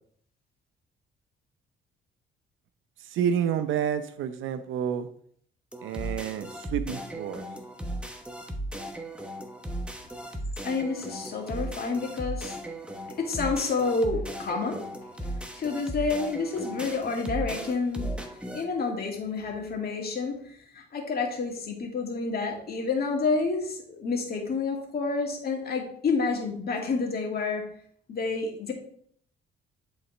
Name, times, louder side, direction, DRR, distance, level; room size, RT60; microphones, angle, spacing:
voice 1, 3.1-5.1 5.8-7.4, right 8 dB, 80° right, 11 dB, 0.7 m, -29 dB
sound 1, 5.7-18.6, right 1 dB, 5° right, 1.1 m, -36 dB
voice 2, 10.6-12.6 13.2-15.1 15.5-27.7 28.1-28.7, left 4 dB, 50° left, 0 dB, 2.2 m, -29 dB
11.0 x 4.1 x 3.3 m, 0.62 s
cardioid pair, 90°, 20 cm